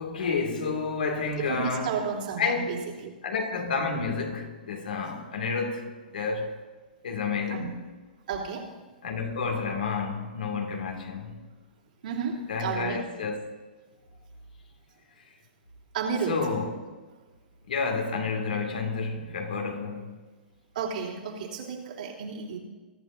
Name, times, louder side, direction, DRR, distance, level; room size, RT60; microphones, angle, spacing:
voice 1, 0.0-2.0 2.4-2.7 3.2-6.5 7.0-7.8 9.0-11.4 12.5-13.5 16.3-16.8 17.7-20.2, left 4 dB, 70° left, 2.2 m, -30 dB
voice 2, 1.5-3.1 7.5-7.7 8.3-8.7 12.0-13.0 15.9-16.4 20.7-22.6, right 6 dB, 65° right, 3.1 m, -32 dB
21.5 x 11.5 x 2.6 m
hypercardioid pair, 115°, 5 cm